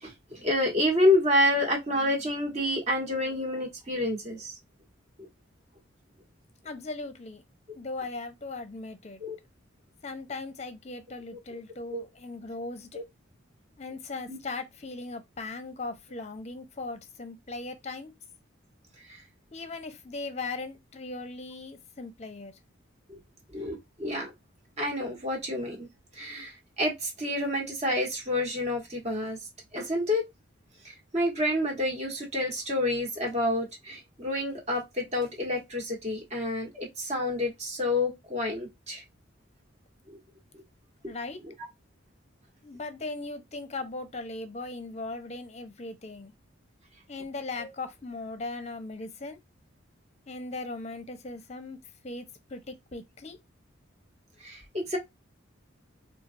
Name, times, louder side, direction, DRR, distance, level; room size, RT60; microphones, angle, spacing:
voice 1, 0.0-4.5 9.2-9.4 11.5-11.6 11.9-12.0 14.3-14.4 23.1-23.2 23.5-24.3 24.8-25.9 26.2-29.4 29.7-30.2 30.8-39.0 41.0-41.1 41.4-41.5 47.6-47.7 54.4-55.0, left 1 dB, 35° right, 1.3 m, -28 dB
voice 2, 6.6-7.4 7.7-9.2 10.0-13.0 13.8-18.1 19.5-22.5 41.0-41.4 42.6-46.3 47.1-49.4 50.3-51.8 52.0-53.4, left 3 dB, 35° left, 0.6 m, -38 dB
4.4 x 2.4 x 2.5 m
head